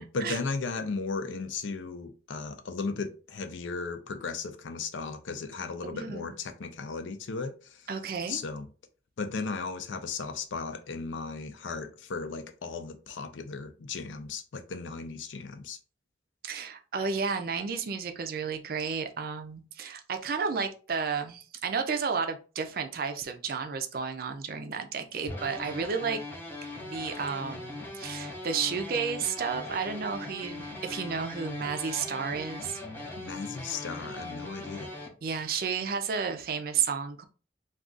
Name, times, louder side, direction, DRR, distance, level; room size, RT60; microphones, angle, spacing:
voice 1, 0.0-7.8 8.3-8.7 9.2-15.8 33.2-34.9, left 4 dB, 85° left, 0.5 m, -36 dB
voice 2, 5.8-6.3 7.9-8.4 16.4-26.2 26.8-32.8 35.2-37.3, right 5 dB, 50° right, 0.4 m, -32 dB
sound 1, 25.3-35.1, left 2 dB, 10° left, 0.5 m, -40 dB
2.4 x 2.3 x 3.7 m
head